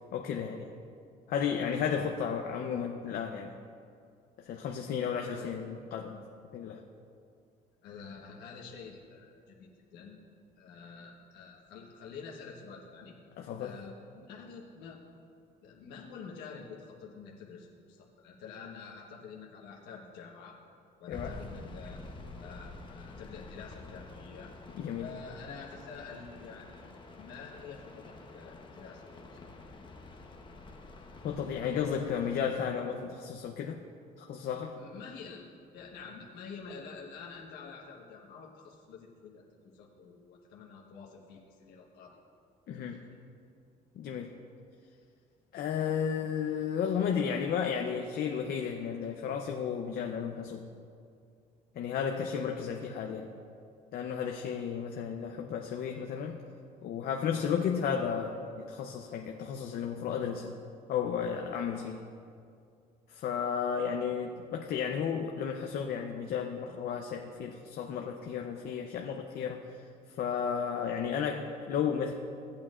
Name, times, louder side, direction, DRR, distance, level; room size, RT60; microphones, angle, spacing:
voice 1, 0.1-0.7 1.3-3.5 4.4-6.2 6.5-6.8 13.4-13.8 21.1-21.4 24.7-25.1 31.2-33.8 34.2-34.8 42.7-43.0 44.0-44.3 45.5-50.7 51.8-53.3 53.9-56.4 56.8-60.6 60.9-62.1 63.1-69.8 70.2-72.1, left 7 dB, 65° left, 3 dB, 0.7 m, -33 dB
voice 2, 7.8-10.2 10.6-13.1 13.6-15.0 15.6-20.6 21.0-22.0 22.4-24.5 25.0-26.9 27.2-29.5 34.8-42.2 42.7-43.0, left 5 dB, 90° left, -3 dB, 1.3 m, -48 dB
sound 1, 21.1-32.4, left 3 dB, 30° left, 1.0 m, -48 dB
17.0 x 8.7 x 2.5 m, 2.4 s
cardioid pair, 110°, 17 cm